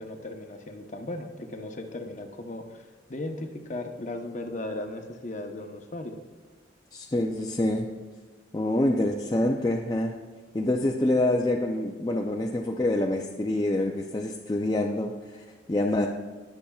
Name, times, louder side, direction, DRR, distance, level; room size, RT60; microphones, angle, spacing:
voice 1, 0.0-6.2, left 1 dB, 40° left, 4 dB, 0.8 m, -37 dB
voice 2, 6.9-7.9 8.5-10.1 10.5-16.1, left 1 dB, 20° left, 0 dB, 0.4 m, -26 dB
20.0 x 6.9 x 2.3 m, 1.4 s
head